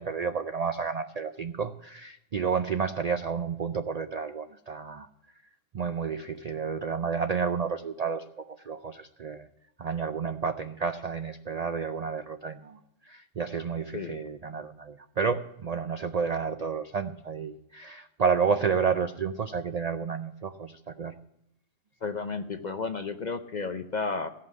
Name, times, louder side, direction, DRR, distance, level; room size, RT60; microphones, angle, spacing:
voice 1, 0.0-5.1 5.7-9.5 9.8-12.8 13.1-21.1, right 6 dB, 65° right, 9 dB, 0.4 m, -31 dB
voice 2, 22.0-24.3, left 4 dB, 50° left, 8 dB, 0.6 m, -32 dB
16.5 x 5.7 x 9.3 m, 0.84 s
omnidirectional pair, 1.4 m